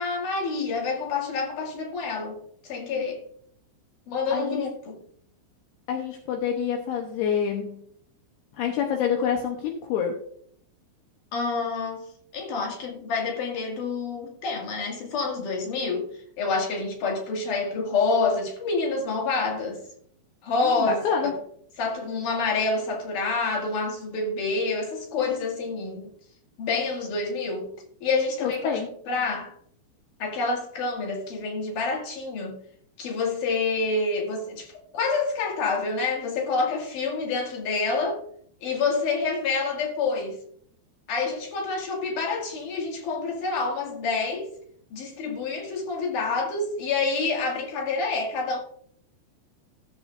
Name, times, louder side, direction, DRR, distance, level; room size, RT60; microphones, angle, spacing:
voice 1, 0.0-2.4 2.6-3.2 4.1-5.0 11.3-12.1 12.3-16.1 16.4-19.8 20.4-21.2 21.8-26.1 26.6-27.7 28.0-28.7 29.1-29.5 30.2-32.5 33.0-38.2 38.6-40.4 41.1-44.5 44.9-48.6, left 4 dB, 50° left, 3.0 m, -27 dB
voice 2, 4.3-4.6 5.9-7.8 8.6-10.2 20.6-21.3 28.4-28.9, left 7 dB, 75° left, 2.4 m, -27 dB
16.0 x 7.7 x 2.6 m
omnidirectional pair, 5.8 m